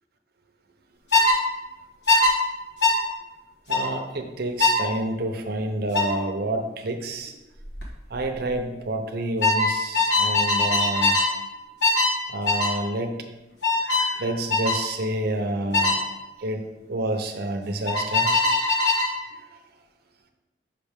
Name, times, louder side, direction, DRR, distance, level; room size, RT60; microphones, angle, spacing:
sound 1, 1.1-1.4 2.1-2.3 2.8-3.0 3.7-3.9 4.6-4.8 5.9-6.1 7.6-7.8 8.1-8.5 9.4-11.3 11.8-12.2 12.5-12.8 13.6-14.1 14.5-14.8 15.7-16.0 17.9-19.1, left 2 dB, 70° left, 1.5 m, -21 dB
voice 1, 3.7-7.3 8.1-11.2 12.3-13.2 13.8-16.0 16.4-18.5 19.3-19.4, right 1 dB, 60° right, 5 dB, 0.7 m, -29 dB
5.4 x 5.4 x 3.5 m, 1.0 s
head